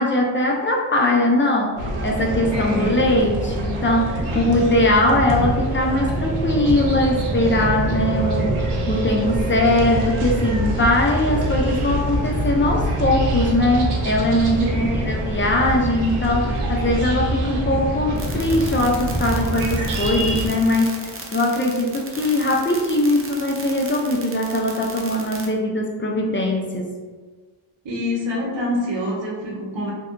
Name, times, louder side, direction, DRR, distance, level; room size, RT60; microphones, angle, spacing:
voice 1, 0.0-26.9, left 1 dB, 25° left, 1 dB, 0.4 m, -21 dB
sound 1, 1.8-20.5, right 1 dB, 85° right, 0.6 m, -24 dB
voice 2, 2.5-3.0 4.3-4.6 14.7-15.1 27.8-29.9, left 1 dB, 60° right, -2 dB, 0.9 m, -26 dB
sound 2, 18.2-25.5, right 3 dB, 30° right, 0.5 m, -36 dB
2.7 x 2.2 x 2.5 m, 1.4 s
cardioid pair, 45°, 50 cm